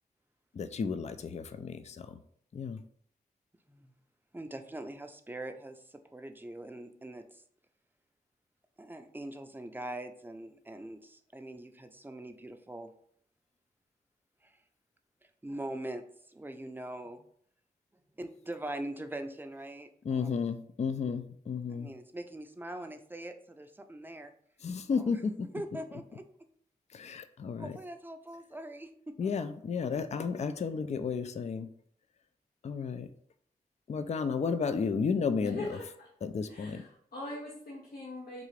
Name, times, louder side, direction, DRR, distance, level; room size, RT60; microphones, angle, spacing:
voice 1, 0.5-2.2 2.5-2.8 20.0-21.9 24.6-25.5 26.9-27.7 29.2-31.7 32.6-33.1 33.9-35.7 36.2-36.8, left 5 dB, 45° left, 10 dB, 0.4 m, -33 dB
voice 2, 4.3-7.4 8.8-12.9 14.4-14.5 15.4-17.2 18.2-20.3 21.7-24.3 24.9-25.2 25.5-26.2 27.6-29.3, right 1 dB, 10° right, 7 dB, 0.5 m, -42 dB
voice 3, 35.4-36.1 36.5-38.5, left 2 dB, 70° left, -4 dB, 0.8 m, -42 dB
3.7 x 2.4 x 3.2 m, 0.62 s
cardioid pair, 40°, 16 cm